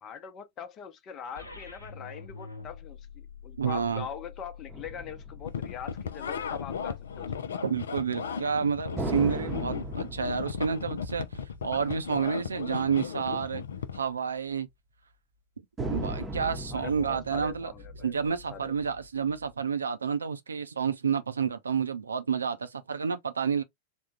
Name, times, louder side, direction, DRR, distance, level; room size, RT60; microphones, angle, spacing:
voice 1, 0.0-7.5 16.7-18.7, left 8 dB, 30° left, 0.8 m, -42 dB
sound 1, 1.4-7.4, left 5 dB, 80° left, 0.8 m, -46 dB
voice 2, 3.6-4.1 7.6-11.3 11.6-13.6 13.9-14.7 15.9-17.7 18.0-23.6, right 6 dB, 75° right, 0.5 m, -29 dB
sound 2, 4.7-6.6 9.0-12.7 13.0-13.1 15.8-19.5, right 1 dB, 15° right, 0.9 m, -38 dB
sound 3, 5.4-14.0, left 7 dB, 65° left, 0.4 m, -36 dB
3.5 x 2.3 x 4.0 m
figure-of-eight pair, 90°, 0 cm